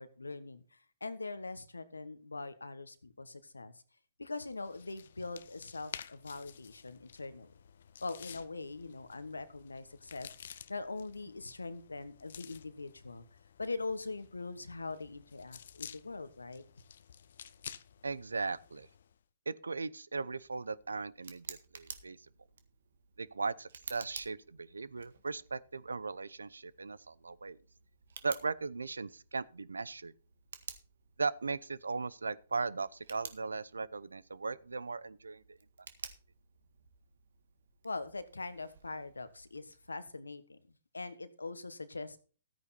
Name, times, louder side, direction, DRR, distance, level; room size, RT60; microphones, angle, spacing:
voice 1, 0.0-3.8 4.2-7.5 8.0-13.2 13.6-16.6 37.8-40.6 40.9-42.2, left 3 dB, 90° left, 1.3 m, -42 dB
sound 1, 4.5-19.2, left 8 dB, 65° left, 0.7 m, -52 dB
voice 2, 18.0-18.9 19.5-22.2 23.2-27.6 28.2-30.1 31.2-35.6, right 4 dB, 85° right, 0.7 m, -38 dB
Tick, 20.2-39.9, right 6 dB, 70° right, 1.7 m, -53 dB
14.0 x 9.2 x 4.2 m
hypercardioid pair, 125°, 0 cm